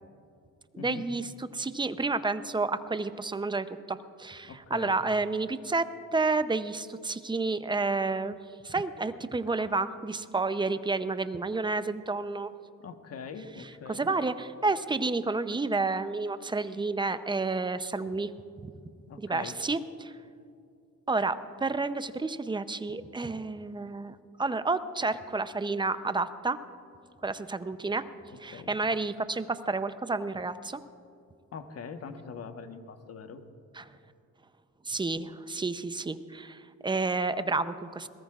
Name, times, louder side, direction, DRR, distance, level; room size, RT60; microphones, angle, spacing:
voice 1, 0.7-5.9 6.1-8.4 8.6-12.5 13.9-18.3 18.6-18.7 19.2-20.1 21.1-26.6 27.2-28.0 28.4-30.8 33.7-33.9 34.8-38.1, right 3 dB, 15° right, 12 dB, 0.6 m, -30 dB
voice 2, 4.5-5.0 12.8-14.1 19.1-19.5 28.5-28.7 31.5-33.4, left 5 dB, 55° left, 7 dB, 1.2 m, -42 dB
21.5 x 18.5 x 2.4 m, 2.4 s
cardioid pair, 90°, 30 cm